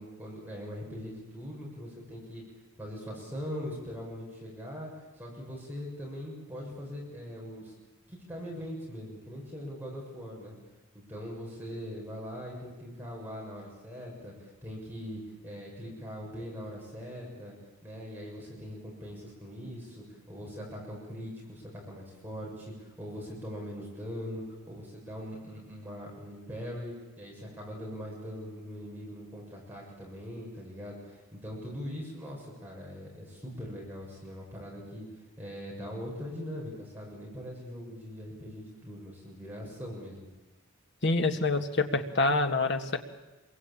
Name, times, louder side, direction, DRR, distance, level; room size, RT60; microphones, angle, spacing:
voice 1, 0.0-2.4 2.8-7.7 8.1-10.5 11.1-17.6 17.8-35.1 35.4-40.3, equal, 10° right, -3 dB, 7.1 m, -41 dB
voice 2, 41.0-43.0, left 2 dB, 55° left, 6 dB, 1.9 m, -26 dB
27.0 x 23.0 x 8.8 m, 1.1 s
head